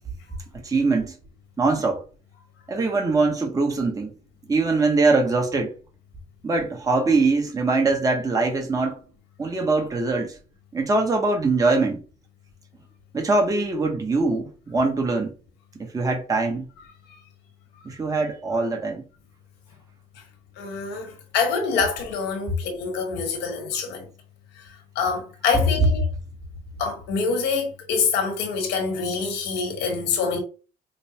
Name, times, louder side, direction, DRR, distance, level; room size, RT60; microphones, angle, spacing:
voice 1, 0.6-1.1 1.6-2.0 2.7-4.2 4.5-5.7 6.4-9.0 9.4-10.4 10.7-12.0 13.1-15.4 15.8-16.7 17.8-19.0, right 3 dB, 20° right, 0.9 m, -22 dB
voice 2, 20.6-24.1 24.5-26.1 26.8-30.4, left 5 dB, 90° left, 1.2 m, -26 dB
5.1 x 2.0 x 2.9 m
cardioid pair, 110°, 17 cm